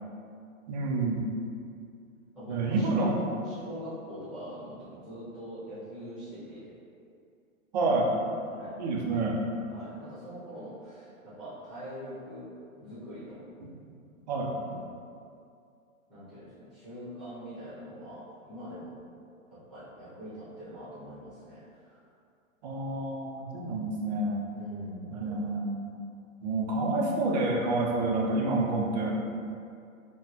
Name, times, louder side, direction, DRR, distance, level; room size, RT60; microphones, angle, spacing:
voice 1, 0.7-1.3 2.5-3.1 7.7-8.1 8.8-9.4 13.6-13.7 14.3-14.5 22.6-24.4 25.1-25.9 26.4-29.2, right 2 dB, 35° right, -2 dB, 0.4 m, -28 dB
voice 2, 2.3-6.7 8.5-8.8 9.7-12.5 12.8-13.4 14.6-15.0 16.1-19.0 19.5-22.0 24.5-25.2, equal, ahead, -11 dB, 1.3 m, -42 dB
3.8 x 2.1 x 2.8 m, 2.4 s
hypercardioid pair, 125°, 42 cm